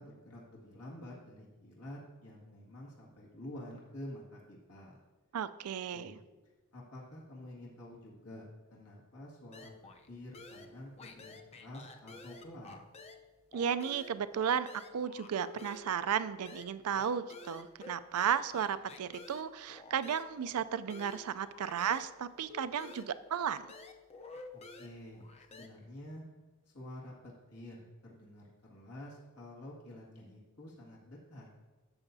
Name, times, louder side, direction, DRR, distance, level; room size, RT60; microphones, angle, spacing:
voice 1, 0.0-5.0 5.9-6.2 6.7-9.7 10.1-12.8 24.5-26.2 26.7-31.5, left 1 dB, 80° left, -4 dB, 1.9 m, -49 dB
voice 2, 5.3-6.2 13.5-23.6, right 8 dB, 75° right, 14 dB, 0.4 m, -34 dB
sound 1, 9.5-10.1 10.3-13.3 13.5-22.1 22.5-25.7, left 3 dB, 30° left, 0.6 m, -52 dB
12.5 x 7.0 x 2.7 m, 1.2 s
head